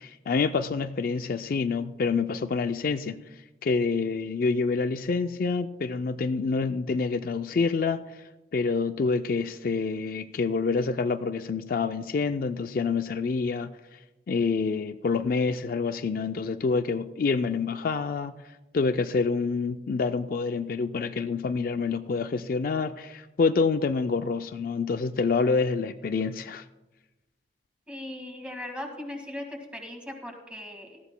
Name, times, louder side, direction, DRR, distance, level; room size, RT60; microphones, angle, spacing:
voice 1, 0.0-3.2 3.6-8.2 8.5-14.0 14.3-18.4 18.7-26.6, left 4 dB, 55° left, 9 dB, 0.4 m, -27 dB
voice 2, 27.9-31.0, left 1 dB, 5° right, 2 dB, 1.9 m, -38 dB
18.0 x 14.0 x 2.2 m, 1.1 s
head